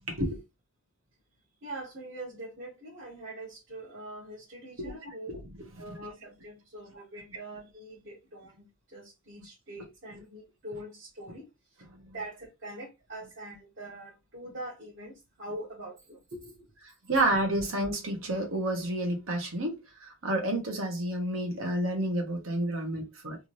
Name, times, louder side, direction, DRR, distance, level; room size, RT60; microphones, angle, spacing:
voice 1, 0.1-0.4 4.8-5.4 5.9-6.1 9.8-9.9 11.9-12.1 17.1-23.4, right 1 dB, 80° right, 1.3 m, -30 dB
voice 2, 1.6-5.3 5.8-11.5 12.1-16.7, right 1 dB, 60° right, 1.6 m, -43 dB
3.5 x 2.7 x 3.1 m
head